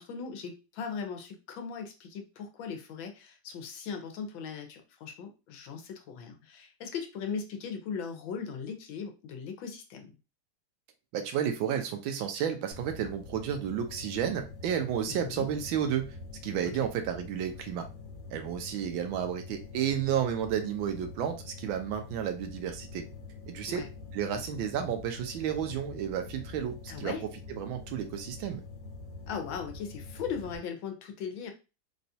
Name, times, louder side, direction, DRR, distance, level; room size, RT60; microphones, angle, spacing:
voice 1, 0.0-10.1 15.1-15.5 23.7-23.9 26.9-27.2 29.3-31.5, left 6 dB, 75° left, 4 dB, 1.4 m, -38 dB
voice 2, 11.1-16.1 16.4-17.8 18.3-23.0 23.5-23.9 24.1-28.6, right 9 dB, 75° right, 6 dB, 1.4 m, -32 dB
sound 1, 12.7-30.6, left 4 dB, 45° left, 0.6 m, -46 dB
4.1 x 2.3 x 2.7 m, 0.30 s
omnidirectional pair, 2.3 m